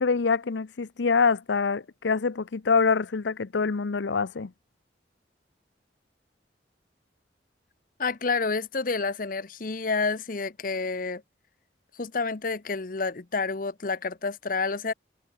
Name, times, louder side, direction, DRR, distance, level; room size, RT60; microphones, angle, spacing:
voice 1, 0.0-4.5, left 5 dB, 75° left, 0.6 m, -25 dB
voice 2, 8.0-11.2 11.9-14.9, left 4 dB, 45° left, 0.8 m, -29 dB
head